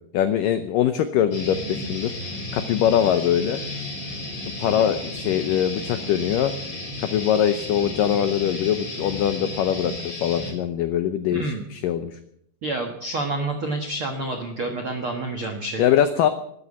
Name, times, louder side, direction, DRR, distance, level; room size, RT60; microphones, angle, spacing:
voice 1, 0.0-2.1 2.5-3.6 4.6-6.5 7.1-12.2 15.8-16.3, left 10 dB, 85° left, 10 dB, 1.9 m, -22 dB
sound 1, 1.3-10.5, left 2 dB, 35° left, 5.6 m, -33 dB
voice 2, 11.3-11.6 12.6-15.8, right 2 dB, 75° right, 4 dB, 1.2 m, -28 dB
13.0 x 12.0 x 8.3 m, 0.72 s
omnidirectional pair, 5.0 m